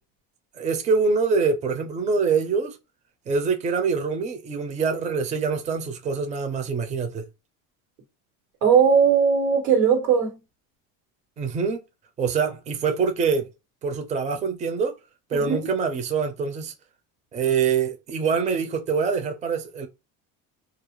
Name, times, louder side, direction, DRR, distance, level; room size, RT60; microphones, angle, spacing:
voice 1, 0.6-2.8 3.3-7.2 11.4-11.8 12.2-13.5 13.8-14.9 15.3-16.7 17.3-19.9, right 5 dB, 20° right, 0.4 m, -25 dB
voice 2, 8.6-10.4 15.3-15.6, right 6 dB, 85° right, 1.3 m, -19 dB
2.4 x 2.1 x 2.9 m
supercardioid pair, 105°, 39 cm